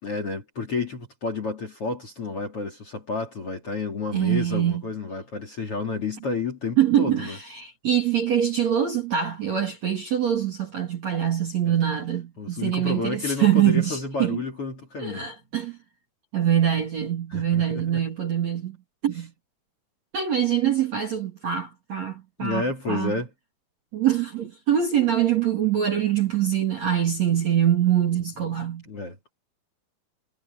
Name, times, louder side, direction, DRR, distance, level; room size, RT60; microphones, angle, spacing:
voice 1, 0.0-7.4 11.6-11.7 12.4-15.3 17.3-18.0 22.4-23.3 28.9-29.3, left 3 dB, 35° left, 2.8 m, -30 dB
voice 2, 4.1-4.8 6.8-14.4 15.0-15.8 16.3-18.8 19.0-19.3 20.1-23.1 23.9-28.8, right 10 dB, 45° right, 2.6 m, -24 dB
omnidirectional pair, 5.7 m